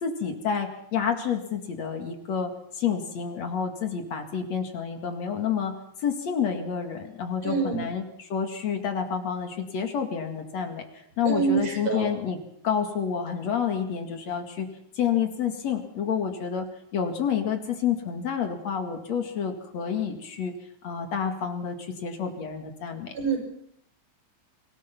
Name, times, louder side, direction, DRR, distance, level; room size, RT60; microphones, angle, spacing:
voice 1, 0.0-5.7 6.0-10.8 11.2-12.4 12.6-14.7 15.0-16.7 16.9-20.5 20.8-23.1, left 7 dB, 65° left, 5 dB, 3.2 m, -29 dB
voice 2, 7.4-7.8 11.2-12.1 23.1-23.4, right 5 dB, 60° right, 2 dB, 6.7 m, -25 dB
25.5 x 18.0 x 6.0 m, 0.73 s
omnidirectional pair, 3.4 m